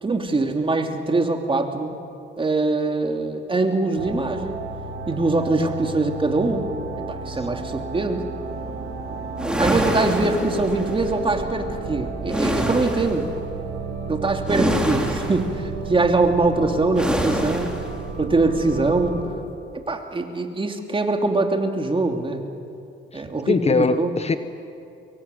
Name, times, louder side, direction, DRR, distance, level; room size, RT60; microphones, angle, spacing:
voice 1, 0.0-1.9 2.4-4.6 5.1-6.6 7.0-8.2 9.6-13.3 14.1-17.7 18.2-19.2 19.7-22.4 23.1-24.1, right 3 dB, 25° right, 4 dB, 2.9 m, -23 dB
sound 1, 4.0-19.2, right 4 dB, 85° right, 4.6 m, -33 dB
sound 2, 9.4-11.0 12.3-13.2 14.5-15.5 17.0-17.9, equal, 5° right, 3.5 m, -25 dB
voice 2, 23.1-24.4, left 4 dB, 30° left, 11 dB, 1.1 m, -22 dB
24.0 x 23.0 x 9.3 m, 2.6 s
cardioid pair, 90°, 20 cm